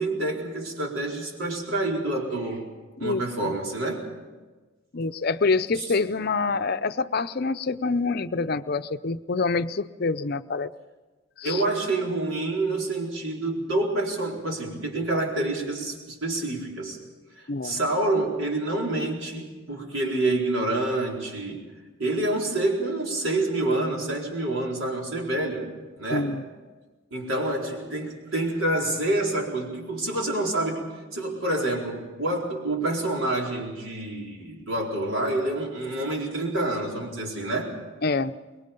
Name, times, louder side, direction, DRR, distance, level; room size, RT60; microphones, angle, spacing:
voice 1, 0.0-2.7 3.0-4.1 5.8-5.9 11.4-17.0 17.4-21.6 22.0-25.7 26.0-26.3 27.1-37.7, right 2 dB, 75° right, 0 dB, 4.4 m, -27 dB
voice 2, 3.0-3.5 4.9-10.7 11.4-11.6 17.5-17.8 26.1-26.4 38.0-38.3, left 4 dB, 50° left, 10 dB, 0.6 m, -26 dB
25.0 x 21.5 x 5.3 m, 1.3 s
head